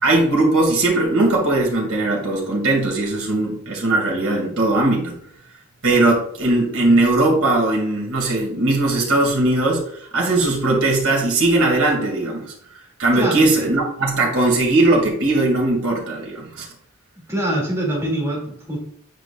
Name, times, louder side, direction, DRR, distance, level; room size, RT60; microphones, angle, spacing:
voice 1, 0.0-5.2 5.8-9.8 10.1-12.5 13.0-16.7, right 2 dB, 90° right, -1 dB, 2.4 m, -19 dB
voice 2, 17.3-18.8, right 1 dB, 15° right, -3 dB, 2.6 m, -24 dB
9.0 x 5.2 x 2.4 m, 0.65 s
head